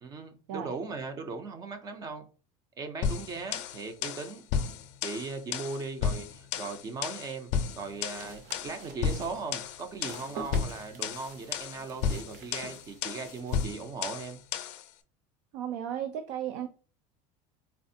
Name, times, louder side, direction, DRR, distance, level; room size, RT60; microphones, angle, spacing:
voice 1, 0.0-2.2 2.8-4.5 5.0-14.4, right 4 dB, 25° right, 0.4 m, -38 dB
sound 1, 3.0-14.9, left 7 dB, 50° left, 0.4 m, -33 dB
sound 2, 7.5-13.7, right 4 dB, 55° right, 0.7 m, -47 dB
voice 2, 15.5-16.7, right 9 dB, 85° right, 0.4 m, -34 dB
4.2 x 2.4 x 2.6 m
cardioid pair, 165°, 16 cm